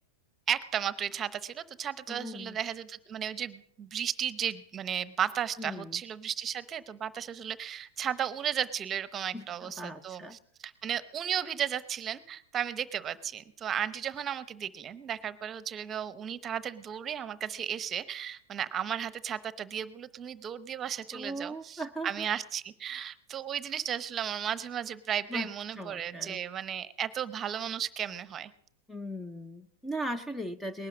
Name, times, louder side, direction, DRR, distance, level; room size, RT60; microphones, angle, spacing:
voice 1, 0.5-28.5, right 9 dB, 25° right, 15 dB, 0.9 m, -34 dB
voice 2, 2.1-2.6 5.6-6.0 9.3-10.4 21.1-22.3 25.3-25.5 25.8-26.4 28.9-30.9, right 1 dB, 5° left, 14 dB, 0.7 m, -38 dB
19.5 x 11.5 x 6.3 m, 0.67 s
hypercardioid pair, 125°, 0 cm